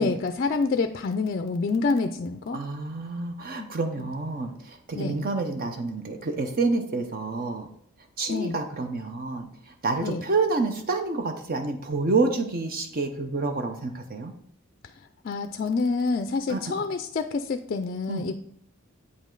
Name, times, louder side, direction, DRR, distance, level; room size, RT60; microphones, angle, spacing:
voice 1, 0.0-2.6 3.6-3.7 4.9-5.2 8.3-8.6 10.0-10.2 15.2-18.3, left 4 dB, 45° left, 8 dB, 0.4 m, -27 dB
voice 2, 2.5-7.7 8.2-14.3 16.5-16.7 18.1-18.3, right 3 dB, 45° right, 6 dB, 0.6 m, -28 dB
8.3 x 5.2 x 3.8 m, 0.68 s
head